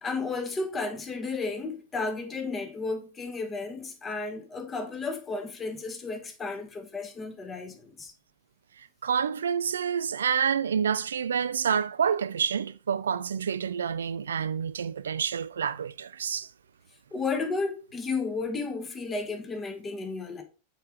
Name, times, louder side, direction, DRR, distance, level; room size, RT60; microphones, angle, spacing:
voice 1, 0.0-8.1 17.1-20.4, left 3 dB, 20° left, 1.4 m, -33 dB
voice 2, 9.0-16.5, right 7 dB, 75° right, 0.3 m, -28 dB
6.5 x 4.7 x 3.7 m
figure-of-eight pair, 90°, 0 cm